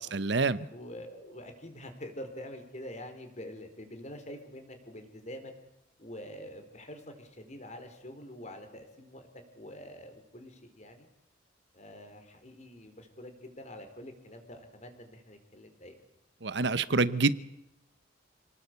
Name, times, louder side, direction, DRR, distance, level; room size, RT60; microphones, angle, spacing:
voice 1, 0.1-0.7 16.4-17.3, right 3 dB, 60° right, 16 dB, 0.9 m, -26 dB
voice 2, 0.7-5.5 6.0-9.3 9.5-11.1 11.7-16.0, left 1 dB, 35° left, 6 dB, 4.7 m, -46 dB
28.5 x 19.0 x 8.3 m, 0.90 s
head